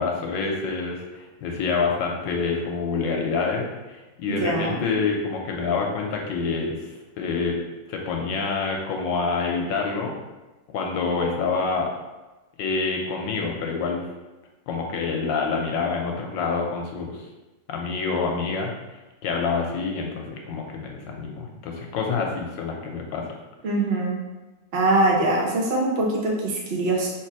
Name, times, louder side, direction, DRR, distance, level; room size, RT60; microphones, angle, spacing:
voice 1, 0.0-7.6 7.9-10.1 10.7-11.9 12.6-14.1 14.7-17.2 17.7-23.3, left 4 dB, 75° left, 1 dB, 1.2 m, -27 dB
voice 2, 4.3-4.9 23.6-24.2 24.7-27.1, right 2 dB, 70° right, -2 dB, 0.5 m, -23 dB
3.3 x 3.1 x 4.5 m, 1.1 s
omnidirectional pair, 2.1 m